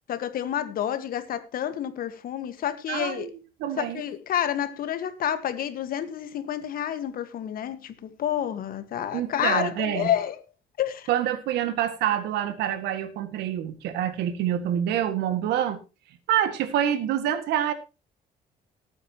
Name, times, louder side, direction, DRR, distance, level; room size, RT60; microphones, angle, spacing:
voice 1, 0.1-3.3 3.8-10.4 10.8-11.1, left 10 dB, 60° left, 1.6 m, -29 dB
voice 2, 2.9-3.3 3.6-4.0 9.1-10.1 11.1-15.8 16.3-17.7, right 10 dB, 85° right, 2.0 m, -26 dB
19.0 x 8.9 x 3.0 m
cardioid pair, 110°, 17 cm